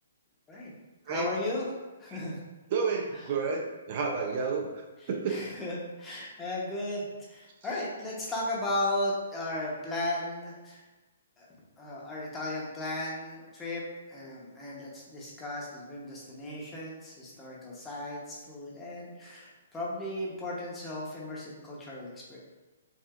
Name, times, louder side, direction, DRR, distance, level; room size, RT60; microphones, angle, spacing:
voice 1, 1.1-1.6 2.0-2.4 5.3-10.8 11.4-11.5 11.8-13.8 14.1-22.4, left 1 dB, 10° left, -5 dB, 0.9 m, -35 dB
voice 2, 2.7-5.4, right 5 dB, 45° right, 2 dB, 0.5 m, -31 dB
4.6 x 2.8 x 2.4 m, 1.2 s
hypercardioid pair, 145°, 0 cm